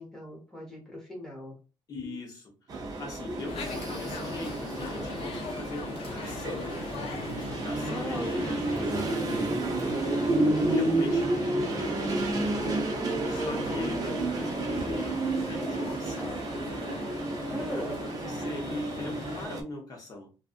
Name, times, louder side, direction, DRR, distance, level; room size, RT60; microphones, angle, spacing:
voice 1, 0.0-1.5 7.9-8.6 8.9-10.0 17.5-18.0, equal, 5° left, -2 dB, 1.0 m, -39 dB
voice 2, 1.9-2.5 3.0-6.8 7.4-8.5 9.8-10.3 10.7-12.8 13.3-16.5 18.2-20.3, left 2 dB, 35° left, 1 dB, 0.9 m, -40 dB
sound 1, 2.7-19.6, right 2 dB, 35° right, 0.5 m, -31 dB
sound 2, 3.5-19.5, left 4 dB, 60° left, 0.5 m, -40 dB
2.6 x 2.4 x 2.4 m, 0.32 s
cardioid pair, 160°, 10 cm